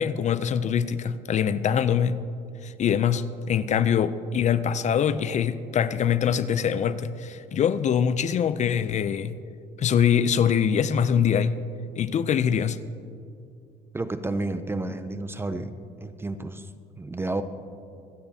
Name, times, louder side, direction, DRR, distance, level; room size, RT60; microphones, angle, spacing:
voice 1, 0.0-2.2 2.6-9.3 9.8-11.5 12.0-12.8, left 8 dB, 45° left, 14 dB, 0.4 m, -23 dB
voice 2, 13.9-16.7 17.0-17.4, right 2 dB, 15° right, 11 dB, 0.5 m, -31 dB
25.0 x 8.9 x 2.8 m, 2.4 s
cardioid pair, 110°, 17 cm